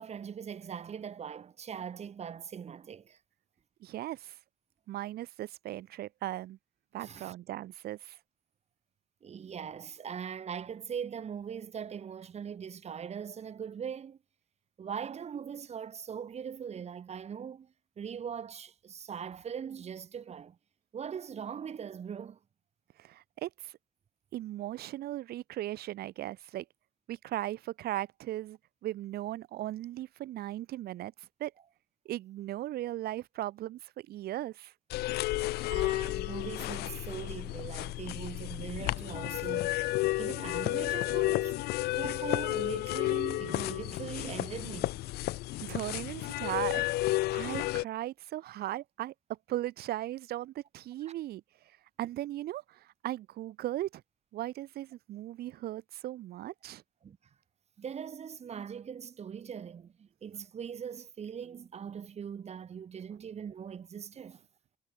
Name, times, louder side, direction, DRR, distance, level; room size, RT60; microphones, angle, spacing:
voice 1, 0.0-3.2 7.0-7.3 9.2-14.2 14.8-20.6 20.9-22.4 35.7-41.6 41.9-45.0 57.0-57.2 57.8-64.4, right 7 dB, 40° right, 2.1 m, -41 dB
voice 2, 3.8-4.4 4.9-6.6 6.9-8.2 23.0-23.7 24.3-26.6 27.1-31.5 32.0-34.7 45.6-46.8 47.3-49.1 49.5-51.4 52.0-54.0 54.3-56.8, right 14 dB, 65° right, 1.2 m, -37 dB
sound 1, 34.9-47.8, left 18 dB, 70° left, 0.4 m, -32 dB
cardioid pair, 110°, 17 cm